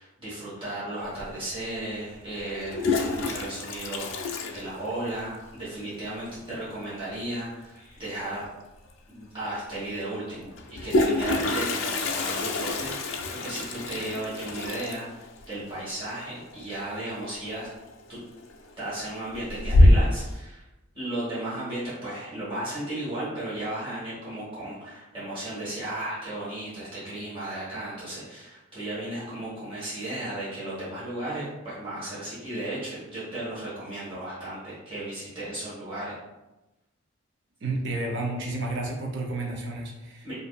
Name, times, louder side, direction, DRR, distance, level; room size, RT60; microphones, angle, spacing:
voice 1, 0.0-8.5 9.1-17.7 18.1-18.2 18.8-20.7 20.9-36.1 40.2-40.4, right 1 dB, 25° right, -11 dB, 1.1 m, -35 dB
Toilet flush, 1.2-1.3 2.5-5.3 5.6-5.7 5.9-6.0 6.3-6.7 8.4-8.5 8.9-9.0 10.5-17.2 17.5-17.9 18.4-18.9 19.3-20.3, left 1 dB, 70° left, 0.3 m, -25 dB
voice 2, 37.6-40.4, right 2 dB, 60° right, 0 dB, 0.5 m, -31 dB
2.6 x 2.5 x 2.3 m, 1.0 s
head